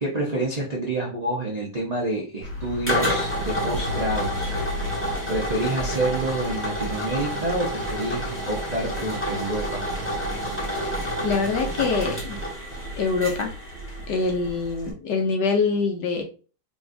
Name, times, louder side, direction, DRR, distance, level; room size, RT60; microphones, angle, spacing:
voice 1, 0.0-4.8 5.3-9.9, right 1 dB, 45° right, -5 dB, 0.5 m, -28 dB
sound 1, 2.4-14.9, equal, 10° left, 1.2 m, -29 dB
voice 2, 11.2-12.4 13.0-13.5 14.1-16.2, left 4 dB, 65° left, 3 dB, 1.3 m, -24 dB
4.9 x 3.0 x 2.6 m, 0.37 s
omnidirectional pair, 2.1 m